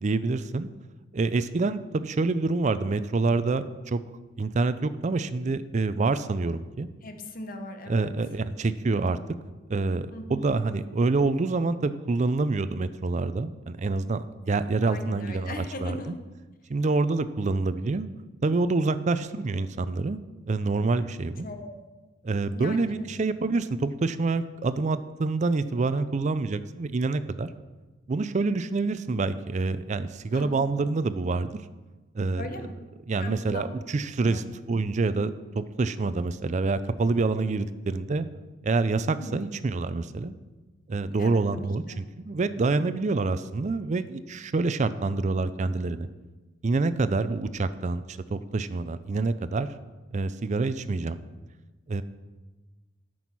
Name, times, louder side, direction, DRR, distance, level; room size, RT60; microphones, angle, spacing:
voice 1, 0.0-0.7 1.1-4.0 4.4-6.9 7.9-9.2 9.7-16.2 16.7-18.1 18.4-21.5 22.2-27.5 28.1-31.5 32.1-32.5 33.1-38.3 38.6-40.4 40.9-46.1 46.6-49.7 50.1-51.2 51.9-52.0, right 3 dB, 35° right, 13 dB, 0.4 m, -27 dB
voice 2, 7.0-8.2 10.1-10.6 14.8-16.2 19.5-19.7 21.4-21.7 22.5-23.1 30.3-30.5 32.4-32.7 33.2-33.6 34.2-34.4 39.2-39.4 41.2-42.0, left 1 dB, 45° left, 7 dB, 1.0 m, -39 dB
9.2 x 6.2 x 6.0 m, 1.2 s
head